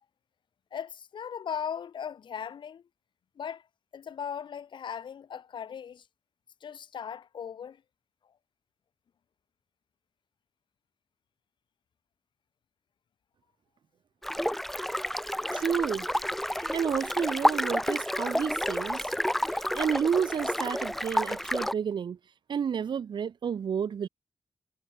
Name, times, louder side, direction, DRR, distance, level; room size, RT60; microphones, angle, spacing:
voice 1, 0.7-2.8 3.4-3.7 3.9-6.1 6.6-7.8, left 8 dB, 85° left, 6.9 m, -38 dB
sound 1, 14.2-21.7, equal, 5° left, 0.6 m, -30 dB
voice 2, 15.5-16.1 16.6-19.1 19.5-22.2 22.5-24.1, right 7 dB, 75° right, 3.6 m, -30 dB
wide cardioid pair, 125°, 8 cm